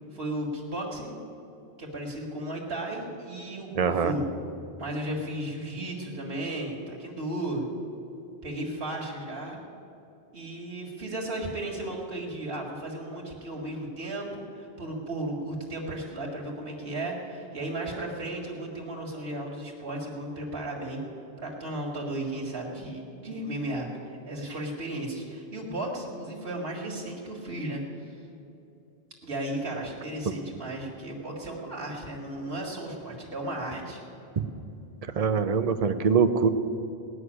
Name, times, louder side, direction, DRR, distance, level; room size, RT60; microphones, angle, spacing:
voice 1, 0.1-1.2 1.8-4.2 4.8-7.6 8.4-9.6 10.3-21.0 21.4-28.2 29.2-34.0, right 1 dB, 65° right, -2 dB, 2.1 m, -35 dB
voice 2, 3.7-4.1 35.1-36.5, right 6 dB, 40° right, 10 dB, 0.7 m, -23 dB
18.0 x 6.3 x 9.8 m, 2.8 s
omnidirectional pair, 1.1 m